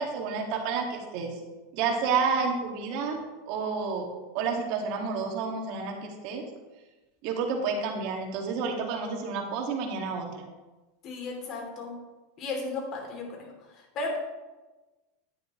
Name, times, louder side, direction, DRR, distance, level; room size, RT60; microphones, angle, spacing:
voice 1, 0.0-1.3 1.7-3.2 3.5-4.1 4.3-6.4 7.2-10.4, right 5 dB, 60° right, 2 dB, 2.1 m, -30 dB
voice 2, 11.0-12.0 12.4-13.5 13.7-14.2, left 3 dB, 45° left, 1 dB, 2.9 m, -34 dB
10.5 x 9.3 x 3.2 m, 1.2 s
supercardioid pair, 120°, 0 cm